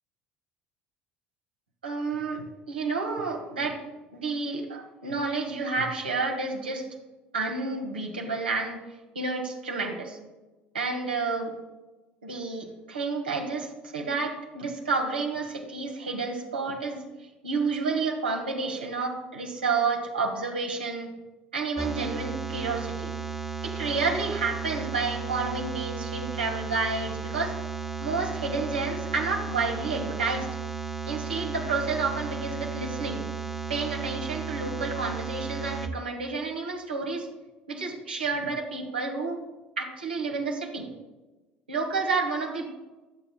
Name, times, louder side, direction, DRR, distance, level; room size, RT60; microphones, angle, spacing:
voice 1, 1.8-3.8 4.1-6.9 7.3-8.8 9.1-10.2 10.7-11.5 12.2-17.0 17.4-21.1 21.5-23.1 23.6-27.6 28.0-30.5 31.1-33.3 33.7-37.3 37.7-39.4 39.8-40.9 41.7-42.6, right 4 dB, 85° right, 2 dB, 1.6 m, -30 dB
sound 1, 21.8-35.9, right 5 dB, 5° right, 1.0 m, -34 dB
20.5 x 8.7 x 2.3 m, 1.1 s
figure-of-eight pair, 65°, 5 cm